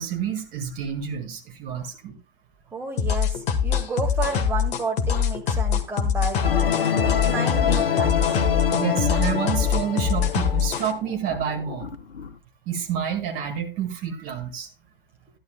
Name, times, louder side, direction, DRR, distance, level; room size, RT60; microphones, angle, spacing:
voice 1, 0.0-2.2 8.7-11.9 12.7-14.7, right 8 dB, 25° right, 3 dB, 1.9 m, -29 dB
voice 2, 2.7-6.4 7.0-8.5, right 4 dB, 5° right, 0 dB, 1.8 m, -31 dB
sound 1, 3.0-10.9, left 7 dB, 20° left, 1.1 m, -23 dB
sound 2, 6.4-12.3, left 7 dB, 65° left, 1.1 m, -26 dB
13.5 x 11.0 x 2.2 m, 0.27 s
figure-of-eight pair, 115°, 31 cm